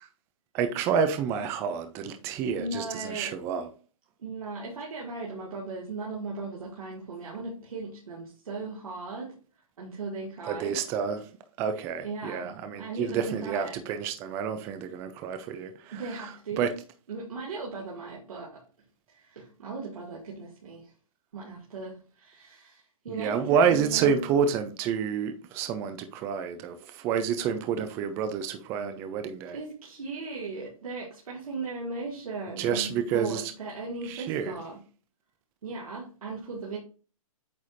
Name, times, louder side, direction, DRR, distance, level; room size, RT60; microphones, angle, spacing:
voice 1, 0.5-3.7 10.4-11.3 11.6-16.7 23.2-29.6 32.6-33.5 34.0-34.6, right 7 dB, 15° right, 0.4 m, -29 dB
voice 2, 2.6-3.4 4.2-9.3 9.8-10.8 12.0-12.5 12.8-13.8 15.9-16.7 17.1-18.6 19.1-20.9 21.3-24.2 29.5-34.8 35.6-36.8, right 3 dB, 80° right, 2.2 m, -37 dB
8.4 x 4.7 x 2.6 m
hypercardioid pair, 160°, 18 cm